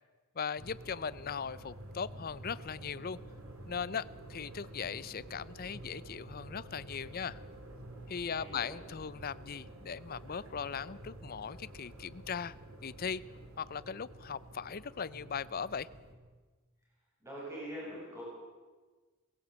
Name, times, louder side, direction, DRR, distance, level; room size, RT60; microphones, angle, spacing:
voice 1, 0.3-3.2 3.7-7.4 8.1-12.5 12.8-13.2 13.6-15.9, left 6 dB, 45° left, 18 dB, 0.6 m, -39 dB
sound 1, 0.6-16.1, right 1 dB, 85° right, 3.2 m, -50 dB
voice 2, 8.3-8.7 17.2-18.2, equal, 15° right, -5 dB, 7.6 m, -43 dB
19.0 x 17.0 x 8.2 m, 1.3 s
head